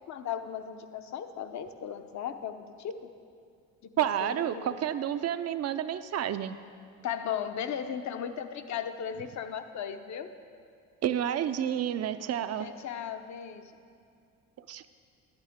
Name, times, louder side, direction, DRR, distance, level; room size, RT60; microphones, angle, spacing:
voice 1, 0.1-3.1 3.8-4.8 7.0-10.3 12.6-13.7, left 8 dB, 55° left, 8 dB, 0.8 m, -36 dB
voice 2, 4.0-6.6 11.0-12.7 14.7-14.8, right 10 dB, 45° right, 11 dB, 0.5 m, -30 dB
12.0 x 8.9 x 3.6 m, 2.3 s
supercardioid pair, 60°, 34 cm